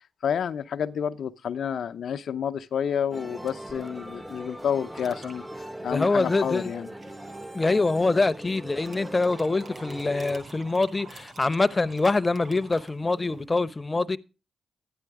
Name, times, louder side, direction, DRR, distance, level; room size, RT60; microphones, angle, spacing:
voice 1, 0.2-5.4 5.8-6.9, left 8 dB, 75° left, 0.7 m, -29 dB
sound 1, 3.1-10.4, right 1 dB, 10° right, 1.2 m, -40 dB
sound 2, 4.9-5.4 6.6-7.3 8.1-13.4, right 3 dB, 45° right, 7.9 m, -48 dB
voice 2, 5.9-6.7 7.5-14.2, left 3 dB, 30° left, 0.9 m, -24 dB
12.5 x 10.0 x 4.8 m
supercardioid pair, 50°, 0 cm